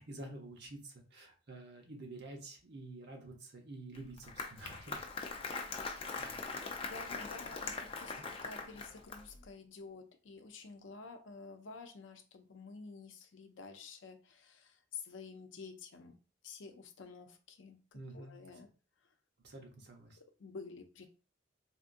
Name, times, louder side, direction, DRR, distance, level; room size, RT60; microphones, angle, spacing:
voice 1, 0.0-5.1 6.1-6.7 17.9-18.4 19.4-20.2, right 2 dB, 65° right, 0.9 m, -49 dB
Applause, 3.9-9.4, left 4 dB, 30° left, 0.5 m, -42 dB
voice 2, 5.8-6.4 6.9-16.2 16.4-17.8 18.1-18.7 20.2-21.1, left 4 dB, 80° left, 0.5 m, -50 dB
3.5 x 2.6 x 2.5 m
head